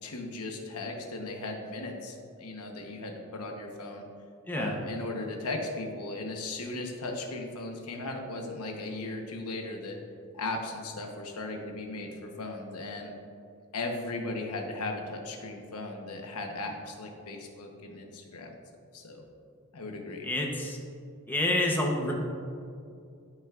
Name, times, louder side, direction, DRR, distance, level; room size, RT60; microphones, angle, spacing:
voice 1, 0.0-4.0 4.5-10.0 10.3-13.1 13.7-18.6 18.9-19.2 19.7-20.3, left 2 dB, 80° left, 2 dB, 1.0 m, -37 dB
voice 2, 4.5-4.8 20.2-20.8 21.3-22.1, left 1 dB, 10° left, -1 dB, 0.8 m, -28 dB
12.5 x 5.7 x 2.4 m, 2.5 s
head